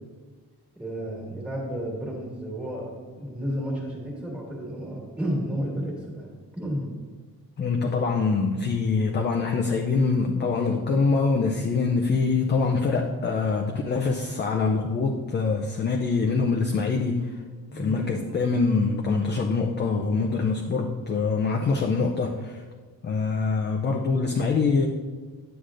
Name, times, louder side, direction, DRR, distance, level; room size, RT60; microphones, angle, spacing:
voice 1, 0.8-6.9 17.7-18.6, equal, 5° right, -3 dB, 1.7 m, -32 dB
voice 2, 7.6-17.4 17.7-22.6 23.0-24.9, left 4 dB, 30° left, 2 dB, 0.4 m, -24 dB
9.8 x 7.9 x 2.5 m, 1.5 s
cardioid pair, 165°, 36 cm